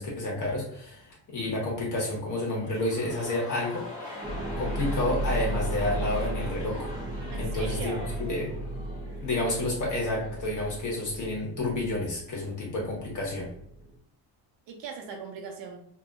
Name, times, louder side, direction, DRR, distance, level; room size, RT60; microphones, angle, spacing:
voice 1, 0.0-3.9 4.6-6.9 7.3-8.5 9.2-13.5, left 2 dB, 40° left, -3 dB, 1.3 m, -30 dB
sound 1, 2.5-10.6 10.8-10.9, left 1 dB, 15° left, 1.1 m, -43 dB
sound 2, 4.2-14.0, right 1 dB, 15° right, 0.5 m, -35 dB
voice 2, 7.3-8.1 14.7-15.9, right 5 dB, 70° right, 2 dB, 0.8 m, -40 dB
2.9 x 2.7 x 2.3 m, 0.70 s
cardioid pair, 140°, 45 cm